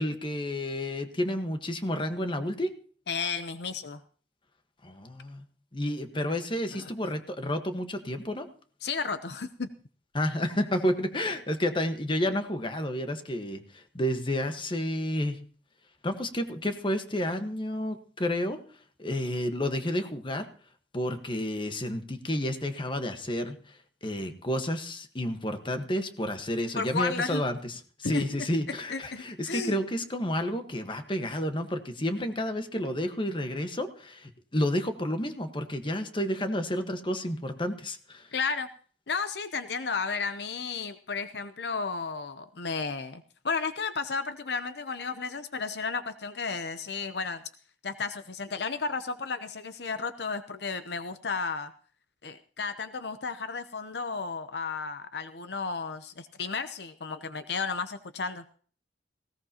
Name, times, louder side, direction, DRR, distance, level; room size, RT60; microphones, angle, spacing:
voice 1, 0.0-2.7 4.8-5.4 5.7-8.5 10.1-15.4 16.0-18.6 19.0-20.5 20.9-27.7 28.0-38.3, left 1 dB, 30° left, 7 dB, 1.4 m, -30 dB
voice 2, 3.1-4.0 6.7-6.9 8.8-9.7 26.8-27.4 28.0-28.2 28.7-29.8 38.3-38.7 39.1-47.4 47.8-51.7 52.2-58.4, left 4 dB, 65° left, 11 dB, 0.8 m, -33 dB
19.0 x 17.5 x 2.9 m, 0.43 s
head